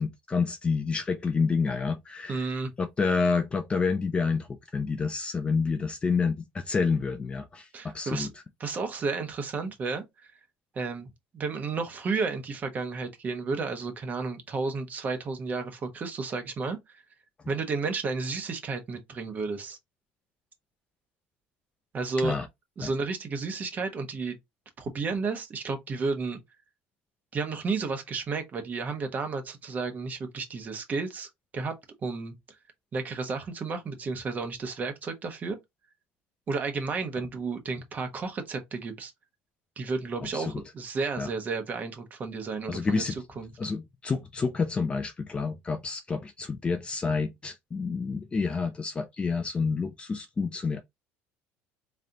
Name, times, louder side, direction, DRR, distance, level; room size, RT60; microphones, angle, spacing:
voice 1, 0.0-2.5 2.8-4.5 4.7-8.3 22.2-22.5 22.8-22.9 40.3-40.5 41.2-41.3 42.7-43.1 43.6-50.8, left 4 dB, 20° left, 0.5 m, -28 dB
voice 2, 2.3-2.7 7.7-8.3 8.6-10.0 10.7-17.0 17.5-19.8 21.9-22.4 22.8-24.4 24.8-26.4 27.3-31.7 32.0-32.3 32.9-35.6 36.5-39.1 39.8-43.0 43.4-43.5, right 4 dB, 35° right, 1.2 m, -32 dB
3.8 x 3.3 x 2.8 m
cardioid pair, 115°, 5 cm